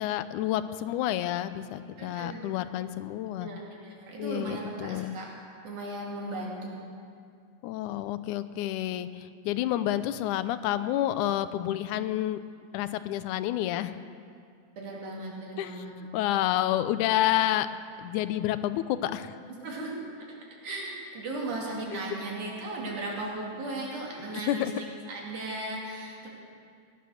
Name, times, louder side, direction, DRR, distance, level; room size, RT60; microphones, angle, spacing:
voice 1, 0.0-3.5 4.2-5.1 7.6-12.4 12.7-14.0 15.6-17.7 18.0-19.4 21.9-22.0 24.3-24.7, left 13 dB, 90° left, 13 dB, 2.1 m, -29 dB
voice 2, 2.0-2.5 3.4-5.3 5.6-6.7 14.8-15.9 19.5-20.0 20.6-26.3, right 2 dB, 80° right, -3 dB, 4.1 m, -36 dB
18.0 x 11.0 x 6.4 m, 2.3 s
omnidirectional pair, 3.4 m